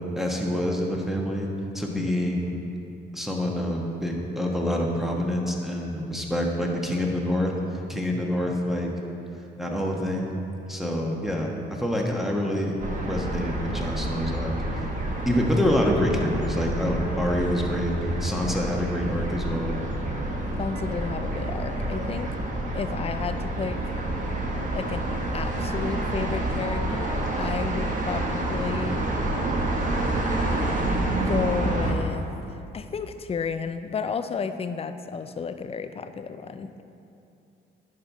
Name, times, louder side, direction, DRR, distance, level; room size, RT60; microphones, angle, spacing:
voice 1, 0.2-1.5 1.7-2.5 3.1-7.5 7.9-8.9 9.6-10.3 10.7-12.8 13.0-14.8 15.2-17.9 18.2-19.8, left 1 dB, ahead, -1 dB, 1.2 m, -26 dB
sound 1, 12.8-31.9, right 1 dB, 40° right, 1.4 m, -28 dB
voice 2, 20.6-22.3 22.7-23.9 24.7-29.0 31.1-36.8, left 5 dB, 30° left, 10 dB, 0.4 m, -32 dB
10.5 x 5.3 x 4.1 m, 2.7 s
cardioid pair, 90°, 20 cm